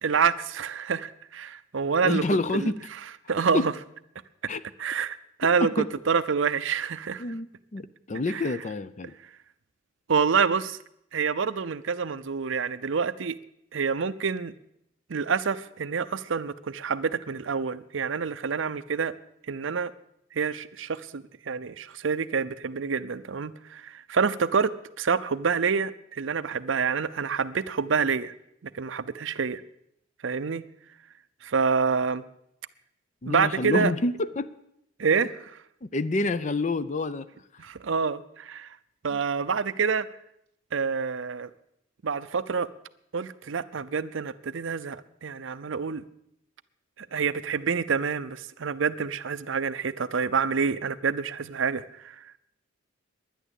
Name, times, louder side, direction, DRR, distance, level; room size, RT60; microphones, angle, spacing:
voice 1, 0.0-2.2 2.5-2.7 3.3-3.7 4.8-5.7 6.1-7.2 8.3-8.4 10.1-10.8 11.1-13.4 13.7-14.5 15.1-19.2 19.5-19.9 20.3-28.3 28.7-29.6 30.2-30.6 31.4-32.2 33.3-33.9 35.0-35.3 37.6-38.7 39.0-40.1 40.7-41.5 42.0-42.7 43.1-46.0 47.0-52.2, right 5 dB, 65° right, 14 dB, 0.6 m, -27 dB
voice 2, 2.0-2.8 3.5-3.7 4.5-4.6 5.8-5.9 7.2-9.1 33.2-34.5 35.8-37.3 37.5-37.6 39.1-39.2, left 2 dB, 35° left, 14 dB, 0.5 m, -28 dB
11.0 x 10.0 x 8.2 m, 0.76 s
head